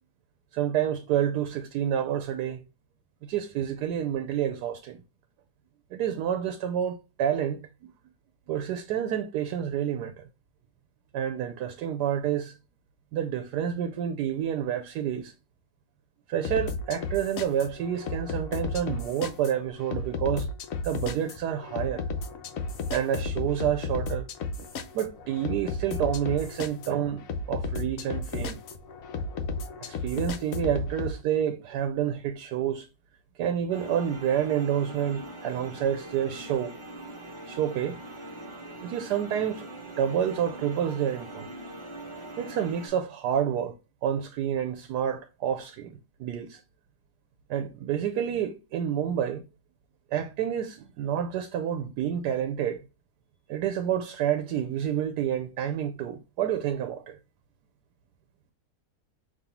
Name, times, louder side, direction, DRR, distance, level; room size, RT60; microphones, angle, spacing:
voice 1, 0.5-2.6 3.2-5.0 5.9-7.6 8.5-10.3 11.1-12.6 13.1-15.3 16.3-20.5 20.8-22.0 22.9-24.3 24.6-24.7 24.9-27.2 27.5-28.6 29.8-32.9 33.4-36.7 37.5-38.0 38.8-39.7 40.0-41.5 42.4-43.7 44.0-46.6 47.5-49.4 50.1-52.8 53.5-57.2, right 9 dB, 85° right, 1.2 m, -29 dB
sound 1, 16.4-31.1, left 3 dB, 65° left, 1.0 m, -34 dB
sound 2, 33.7-42.9, right 1 dB, 20° right, 0.9 m, -42 dB
5.3 x 2.9 x 2.9 m
omnidirectional pair, 1.7 m